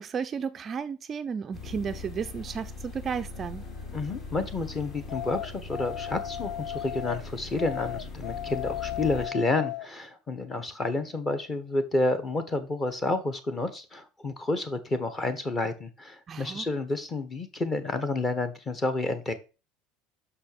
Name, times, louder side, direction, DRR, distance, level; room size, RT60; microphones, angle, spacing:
voice 1, 0.0-3.6 16.3-16.7, right 6 dB, 25° right, 0.4 m, -33 dB
sound 1, 1.5-9.3, left 3 dB, 40° left, 3.4 m, -41 dB
voice 2, 3.9-19.3, left 2 dB, 20° left, 1.3 m, -30 dB
sound 2, 5.1-7.2 7.6-9.9, left 12 dB, 55° left, 0.5 m, -35 dB
6.1 x 5.7 x 6.7 m
cardioid pair, 150°, 0 cm